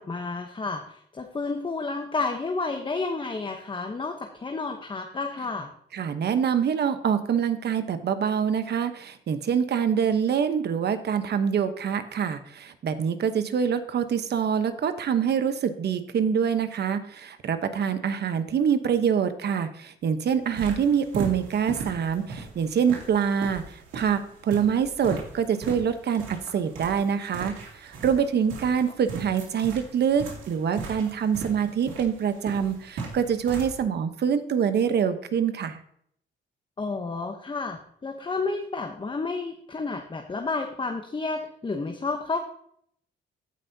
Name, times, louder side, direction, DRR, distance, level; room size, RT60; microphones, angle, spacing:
voice 1, 0.0-5.7 36.8-42.4, left 3 dB, 25° left, 4 dB, 0.9 m, -31 dB
voice 2, 5.9-23.6 23.9-35.8, right 7 dB, 55° right, 9 dB, 1.0 m, -25 dB
sound 1, 20.4-33.8, right 4 dB, 90° right, 2.4 m, -39 dB
15.0 x 5.7 x 2.8 m, 0.67 s
cardioid pair, 90°, 20 cm